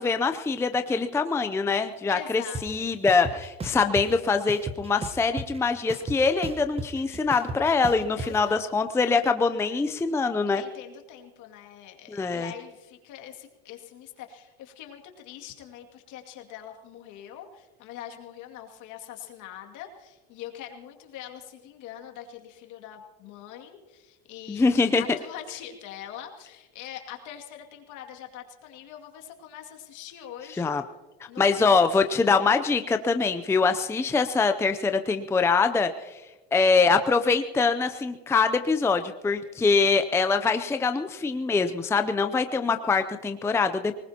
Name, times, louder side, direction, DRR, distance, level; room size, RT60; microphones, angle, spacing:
voice 1, 0.0-10.6 12.1-12.5 24.5-25.0 30.6-30.8 31.4-35.9 36.5-44.0, left 4 dB, 10° left, 8 dB, 0.5 m, -24 dB
voice 2, 2.1-2.9 8.2-8.6 10.5-30.7 31.3-32.3, left 10 dB, 65° left, 3 dB, 2.4 m, -43 dB
sound 1, 2.5-2.6 3.1-4.1 4.5-5.6 5.9-8.3, right 3 dB, 20° right, 1.0 m, -34 dB
24.5 x 19.5 x 2.9 m, 1.2 s
supercardioid pair, 120°, 33 cm